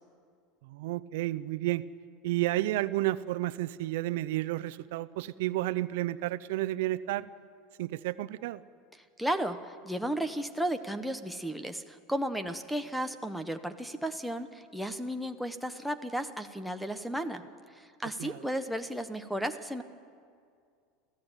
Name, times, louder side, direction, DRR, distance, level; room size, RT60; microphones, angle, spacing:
voice 1, 0.6-1.8 2.2-7.3 7.8-8.6 18.2-18.4, right 16 dB, 75° right, 15 dB, 0.7 m, -31 dB
voice 2, 9.2-17.4 17.7-19.8, right 1 dB, ahead, 6 dB, 1.1 m, -34 dB
28.0 x 15.5 x 9.0 m, 2.2 s
supercardioid pair, 145°, 0 cm